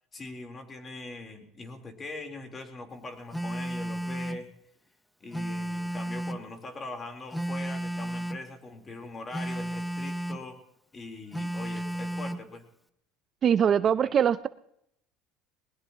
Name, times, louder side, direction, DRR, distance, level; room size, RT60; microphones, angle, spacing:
voice 1, 0.1-4.5 5.2-10.6 10.9-12.6, left 3 dB, 25° left, 4 dB, 3.7 m, -42 dB
Telephone, 3.3-4.5 5.3-6.5 7.3-8.5 9.3-10.5 11.3-12.5, right 1 dB, 5° left, 0.9 m, -33 dB
voice 2, 13.4-14.5, right 8 dB, 40° right, 14 dB, 0.6 m, -22 dB
20.5 x 20.5 x 3.0 m, 0.72 s
supercardioid pair, 110°, 0 cm